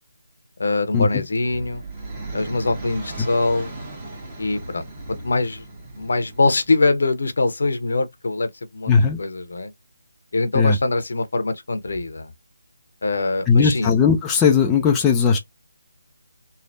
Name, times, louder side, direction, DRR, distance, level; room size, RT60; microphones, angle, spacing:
voice 1, 0.6-1.8 2.3-3.8 4.4-5.7 6.0-9.7 10.3-12.3 13.0-13.9, left 3 dB, 65° left, 0.8 m, -23 dB
sound 1, 1.2-7.1, right 2 dB, 20° right, 1.2 m, -37 dB
voice 2, 8.9-9.2 10.5-10.8 13.5-15.4, left 6 dB, 10° left, 0.4 m, -17 dB
3.2 x 2.0 x 2.6 m
figure-of-eight pair, 160°, 0 cm